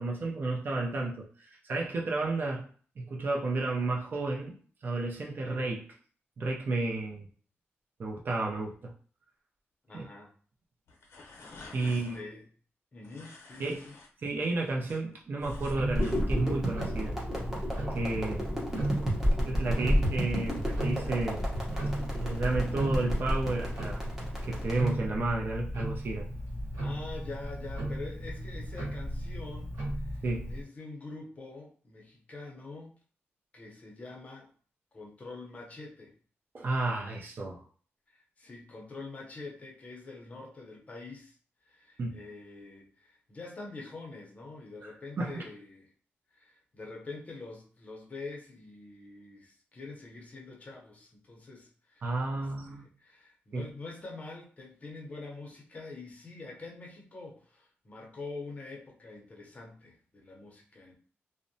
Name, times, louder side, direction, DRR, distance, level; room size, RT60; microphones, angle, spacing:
voice 1, 0.0-2.7 3.0-4.6 4.8-5.9 6.4-7.3 8.0-8.9 9.9-10.1 11.7-12.2 13.6-13.8 14.2-17.2 17.9-18.5 19.4-21.4 22.1-24.0 24.4-26.3 30.2-30.5 36.5-37.6 42.0-42.2 45.2-45.4 52.0-52.8 53.5-53.7, right 2 dB, 50° right, -1 dB, 0.5 m, -32 dB
voice 2, 9.9-10.3 11.8-12.4 12.9-13.9 26.7-32.9 33.5-34.5 34.9-36.1 38.1-41.4 41.7-45.9 46.3-60.9, left 3 dB, 35° left, -1 dB, 0.6 m, -45 dB
sound 1, 10.9-12.2 13.0-14.1 14.5-16.2, left 3 dB, 80° left, 0.7 m, -50 dB
Tick-tock, 15.4-30.6, equal, 80° right, 1.1 m, -36 dB
sound 2, 15.9-24.9, equal, 10° right, 0.8 m, -31 dB
2.6 x 2.1 x 2.6 m, 0.43 s
wide cardioid pair, 145°, 4 cm